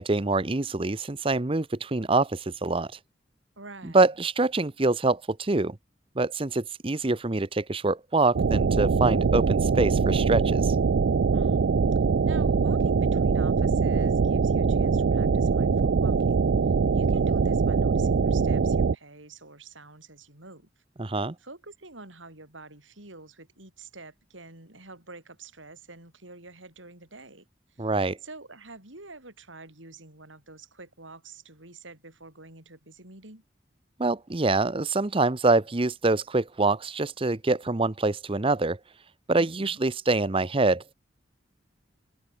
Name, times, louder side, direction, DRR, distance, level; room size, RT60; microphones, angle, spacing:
voice 1, 0.0-3.0 3.9-5.8 6.2-10.8 21.0-21.3 27.8-28.2 34.0-38.8 39.3-40.9, right 3 dB, 30° right, 0.8 m, -25 dB
voice 2, 3.6-4.1 11.3-11.7 12.3-16.5 16.9-20.7 21.4-27.9 28.2-33.4 39.3-39.8, right 3 dB, 85° right, 7.5 m, -47 dB
sound 1, 8.3-18.9, right 5 dB, 65° right, 0.4 m, -23 dB
open air
head